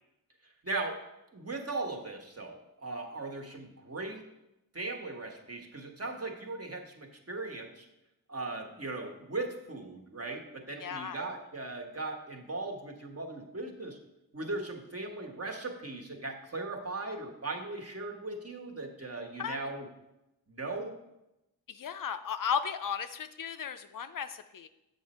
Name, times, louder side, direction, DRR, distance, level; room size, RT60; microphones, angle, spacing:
voice 1, 0.6-1.0 1.3-4.2 4.7-7.9 8.3-14.0 14.3-19.9 20.5-20.9, right 2 dB, 40° right, 2 dB, 1.3 m, -38 dB
voice 2, 10.8-11.2 19.4-19.7 21.7-24.7, left 7 dB, 60° left, 10 dB, 0.5 m, -35 dB
7.1 x 5.4 x 4.2 m, 0.91 s
cardioid pair, 50°, 39 cm